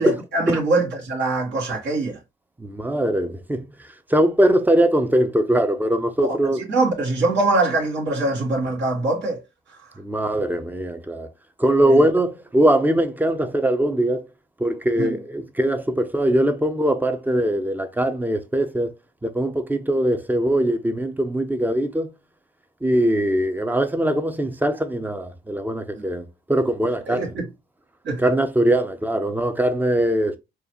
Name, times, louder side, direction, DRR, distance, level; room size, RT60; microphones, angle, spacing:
voice 1, 0.0-2.2 6.2-9.4 11.8-12.0 15.0-15.1 26.0-26.1 27.1-27.5 28.0-28.2, right 2 dB, 65° right, 2.1 m, -23 dB
voice 2, 2.6-3.6 4.1-6.6 10.0-11.3 11.6-14.2 14.6-18.9 19.2-22.1 22.8-27.4 28.2-30.4, right 1 dB, 10° right, 0.6 m, -21 dB
4.7 x 2.4 x 2.9 m
cardioid pair, 90°, 20 cm